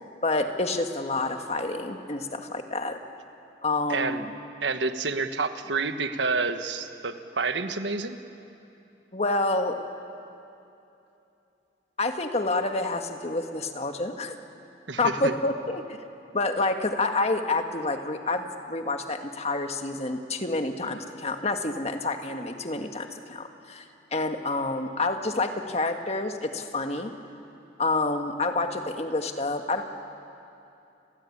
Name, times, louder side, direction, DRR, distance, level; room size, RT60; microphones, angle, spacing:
voice 1, 0.2-3.0 3.6-4.3 9.1-9.8 12.0-14.3 15.0-15.8 16.3-23.8 24.1-27.1 27.8-29.8, left 2 dB, 35° left, 5 dB, 1.7 m, -28 dB
voice 2, 3.9-4.2 4.6-8.2 14.9-15.3, right 4 dB, 85° right, 9 dB, 1.4 m, -29 dB
30.0 x 22.5 x 8.7 m, 2.8 s
head